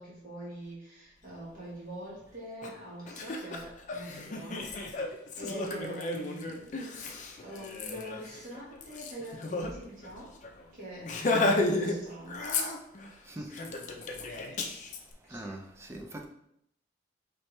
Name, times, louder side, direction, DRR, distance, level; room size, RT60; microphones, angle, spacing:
voice 1, 0.0-6.7 7.4-10.3 10.7-11.1 11.4-12.5 13.3-13.4 14.3-14.5 15.3-15.5, right 1 dB, 45° right, 1.4 m, -44 dB
Laughter, 2.6-2.7 3.1-9.7 10.0-10.1 10.4-10.6 11.0-12.0 12.3-13.1 13.5-15.0, left 2 dB, 40° left, 0.5 m, -33 dB
voice 2, 15.3-16.3, right 1 dB, 15° right, 0.4 m, -42 dB
4.5 x 3.2 x 3.2 m
head